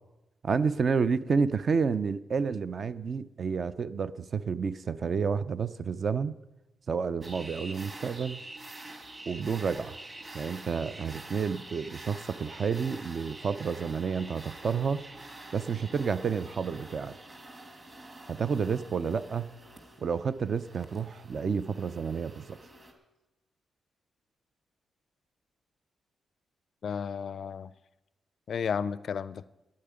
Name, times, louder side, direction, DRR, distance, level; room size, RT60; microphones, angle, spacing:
voice 1, 0.4-6.4 6.9-8.4 9.3-9.9 10.3-15.0 15.5-17.2 18.3-19.5 20.0-22.6, right 5 dB, 40° right, 14 dB, 0.5 m, -30 dB
sound 1, 7.2-22.9, right 2 dB, 25° right, 1.6 m, -47 dB
voice 2, 26.8-27.7 28.5-29.5, left 6 dB, 50° left, 17 dB, 0.4 m, -33 dB
9.5 x 8.5 x 8.9 m, 1.0 s
wide cardioid pair, 165°, 0 cm